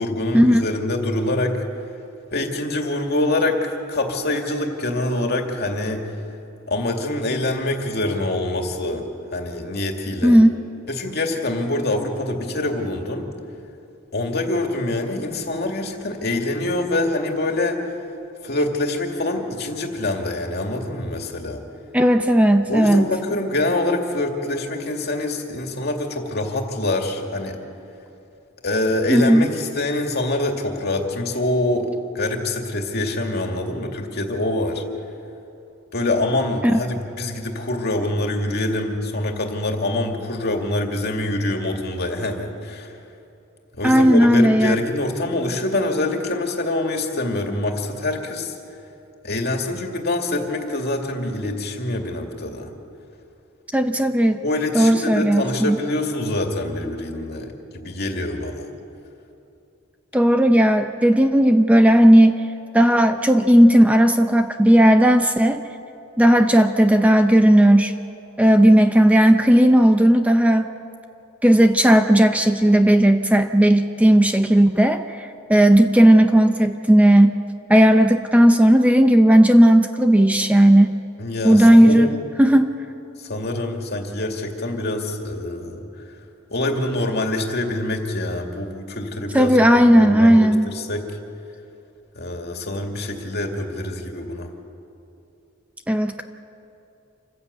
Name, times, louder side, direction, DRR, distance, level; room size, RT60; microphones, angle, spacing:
voice 1, 0.0-1.6 2.3-6.1 6.7-9.0 9.3-10.4 10.9-13.3 14.1-18.0 18.4-21.6 22.7-27.6 28.6-34.8 35.9-42.9 43.7-48.5 49.2-52.7 54.4-58.7 81.2-82.2 83.2-85.9 86.5-91.1 92.2-94.5, left 2 dB, 55° left, 3 dB, 2.3 m, -25 dB
voice 2, 21.9-23.1 29.1-29.5 36.6-36.7 43.8-44.8 53.7-54.4 54.7-55.8 60.1-62.3 62.7-65.6 66.2-67.9 68.4-70.7 71.4-77.4 77.7-81.0 81.4-82.1 82.4-82.7 89.3-90.7 95.9-96.2, right 1 dB, 5° right, 7 dB, 0.6 m, -14 dB
27.5 x 15.0 x 8.2 m, 2.8 s
head